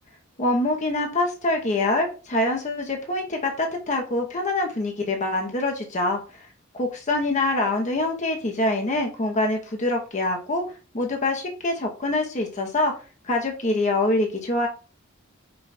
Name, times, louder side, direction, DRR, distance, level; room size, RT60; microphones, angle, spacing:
voice 1, 0.4-6.2 6.7-10.7 10.9-12.9 13.2-14.7, left 2 dB, 35° left, 2 dB, 0.7 m, -25 dB
5.4 x 2.3 x 4.0 m, 0.35 s
head